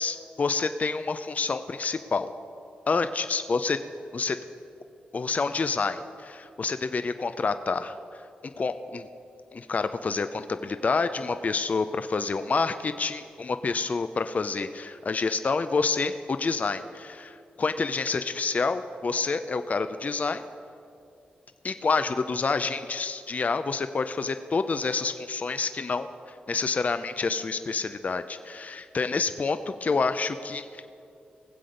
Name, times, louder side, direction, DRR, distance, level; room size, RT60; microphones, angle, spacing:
voice 1, 0.0-2.3 2.9-3.8 4.1-4.4 5.1-8.2 8.6-9.1 9.5-20.4 21.6-30.8, left 4 dB, 45° left, 10 dB, 0.5 m, -28 dB
19.0 x 7.7 x 5.2 m, 2.6 s
cardioid pair, 55°, 4 cm